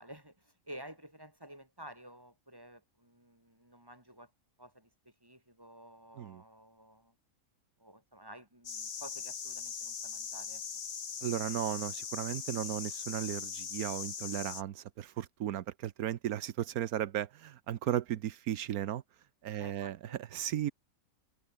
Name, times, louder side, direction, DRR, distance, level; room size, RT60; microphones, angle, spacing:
voice 1, 0.0-4.3 4.6-7.1 7.8-10.6 19.6-20.2, right 1 dB, 15° right, 6.4 m, -52 dB
sound 1, 8.6-14.6, left 6 dB, 55° left, 1.6 m, -40 dB
voice 2, 11.2-19.0 19.4-20.7, right 11 dB, 85° right, 1.3 m, -35 dB
open air
omnidirectional pair, 1.5 m